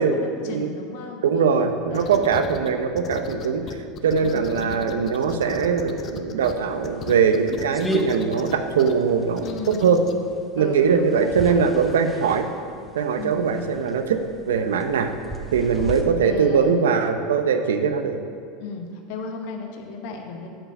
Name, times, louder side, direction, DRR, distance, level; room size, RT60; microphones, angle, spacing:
voice 1, 0.0-2.2 4.2-4.7 9.4-10.0 10.6-11.6 11.9-12.2 13.2-13.7 15.8-15.9 16.2-16.8 18.6-20.5, left 4 dB, 70° left, 2 dB, 1.0 m, -35 dB
voice 2, 1.2-3.8 4.0-10.0 10.5-12.4 12.9-14.2 14.5-15.1 15.5-18.2, right 6 dB, 90° right, 7 dB, 0.6 m, -21 dB
sound 1, 1.9-2.7 3.0-6.5 6.8-8.9 9.4-10.1, left 7 dB, 40° left, 0.6 m, -35 dB
sound 2, 6.4-16.0, equal, 5° left, 1.0 m, -36 dB
7.6 x 4.7 x 6.8 m, 2.2 s
hypercardioid pair, 100°, 0 cm